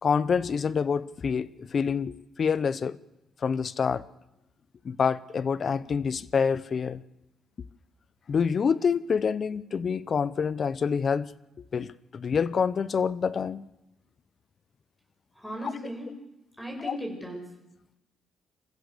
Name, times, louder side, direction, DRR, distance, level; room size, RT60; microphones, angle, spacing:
voice 1, 0.0-3.0 3.4-4.1 4.8-7.0 8.3-11.3 11.7-13.7 15.6-15.7 16.8-17.0, left 6 dB, 45° left, 0.8 m, -27 dB
voice 2, 15.4-16.1 16.6-17.4, equal, 5° left, 7.6 m, -36 dB
28.0 x 15.0 x 6.8 m
cardioid pair, 90°, 0 cm